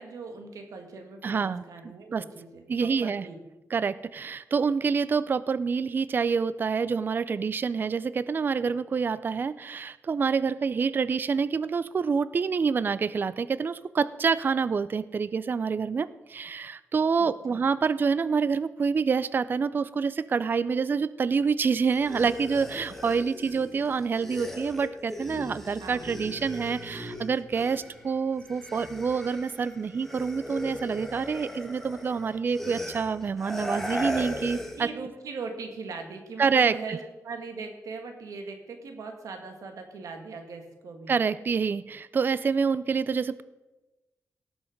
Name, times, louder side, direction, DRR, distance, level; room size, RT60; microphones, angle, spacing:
voice 1, 0.0-3.4 17.2-17.6 25.8-26.1 34.7-41.1, right 4 dB, 80° right, 4 dB, 2.0 m, -40 dB
voice 2, 1.2-2.2 2.7-3.3 3.7-34.9 36.4-37.0 41.1-43.4, right 5 dB, 35° right, 16 dB, 0.4 m, -27 dB
sound 1, 21.9-28.1 28.4-34.9, left 1 dB, 5° left, 1.4 m, -38 dB
18.0 x 6.2 x 5.2 m, 1.1 s
wide cardioid pair, 130°, 6 cm